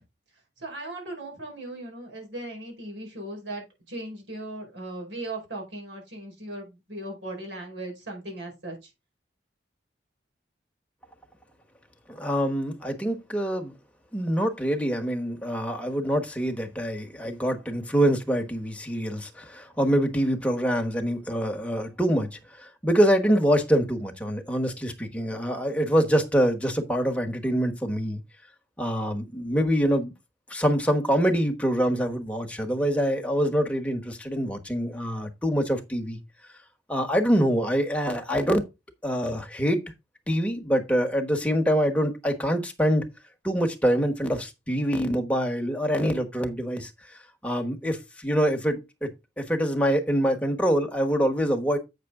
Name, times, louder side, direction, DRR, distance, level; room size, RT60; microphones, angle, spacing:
voice 1, 0.6-8.9, right 1 dB, 90° right, 4.6 m, -38 dB
voice 2, 12.1-13.8 14.1-28.2 28.8-30.1 30.5-36.2 36.9-38.6 39.0-39.8 40.3-43.1 43.4-46.9 47.4-49.1 49.4-51.8, equal, 10° left, 1.2 m, -25 dB
8.0 x 6.4 x 3.7 m
head